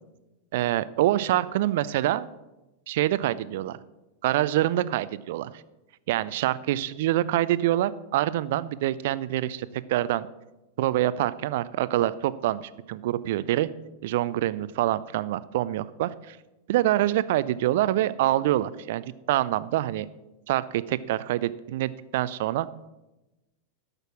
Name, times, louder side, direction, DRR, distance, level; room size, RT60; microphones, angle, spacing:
voice 1, 0.5-2.3 2.9-3.8 4.2-5.6 6.1-10.3 10.8-13.7 14.0-16.4 16.7-20.1 20.5-22.7, right 14 dB, 55° right, 17 dB, 0.5 m, -26 dB
12.5 x 6.7 x 6.0 m, 1.0 s
figure-of-eight pair, 90°, 0 cm